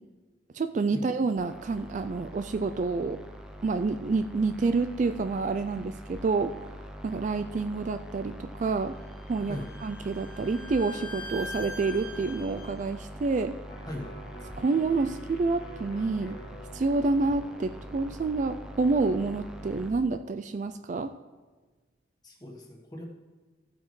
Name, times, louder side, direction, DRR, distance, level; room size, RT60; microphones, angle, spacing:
voice 1, 0.5-3.2 3.6-6.7 7.0-9.0 9.3-13.6 14.6-16.4 16.7-21.1, right 3 dB, 40° right, 10 dB, 0.3 m, -28 dB
sound 1, 1.4-19.9, equal, 5° right, 0.6 m, -44 dB
Bowed string instrument, 8.9-12.7, left 1 dB, 85° left, 3.4 m, -42 dB
Electric guitar, 13.7-19.9 20.3-20.4, equal, 65° left, 1.7 m, -49 dB
voice 2, 22.2-23.0, left 1 dB, 20° left, 0 dB, 1.4 m, -39 dB
14.5 x 8.3 x 3.2 m, 1.3 s
head